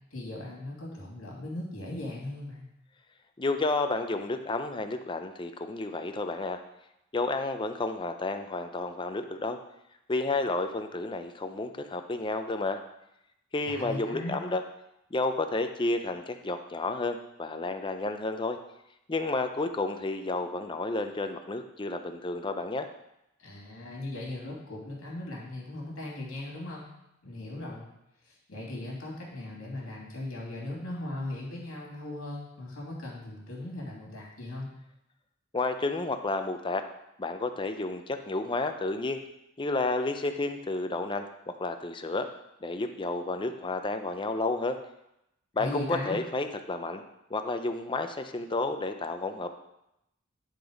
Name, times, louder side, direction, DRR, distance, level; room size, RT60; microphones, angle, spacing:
voice 1, 0.1-2.6 13.6-14.4 23.4-26.9 27.2-27.9 28.2-34.7 45.6-46.2, left 1 dB, 70° left, -4 dB, 2.7 m, -38 dB
voice 2, 3.4-6.6 7.1-9.6 10.1-12.8 13.5-14.6 15.1-18.6 19.1-22.9 35.5-36.8 37.2-39.2 39.6-42.3 42.6-44.8 45.6-47.0 47.3-49.5, left 2 dB, 25° left, 7 dB, 0.5 m, -31 dB
10.5 x 4.0 x 5.1 m, 0.84 s
head